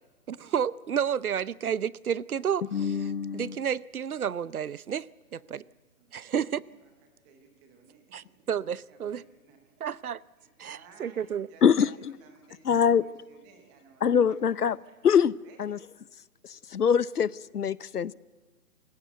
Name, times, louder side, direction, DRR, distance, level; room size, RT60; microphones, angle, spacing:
voice 1, 0.3-5.1 5.3-5.6 6.1-6.6 8.1-9.2 9.8-10.2 10.6-11.5, right 8 dB, 65° right, 21 dB, 0.7 m, -31 dB
voice 2, 2.7-3.6 11.6-11.9 12.7-13.0 14.0-14.8 15.0-15.3 15.6-15.8 16.7-18.1, left 7 dB, 75° left, 21 dB, 0.8 m, -23 dB
voice 3, 5.2-5.7 6.0-8.5 8.8-10.0 10.4-11.9 12.2-15.1 15.4-15.6, right 5 dB, 5° right, 4 dB, 0.6 m, -58 dB
28.0 x 16.5 x 8.1 m, 1.4 s
figure-of-eight pair, 145°, 46 cm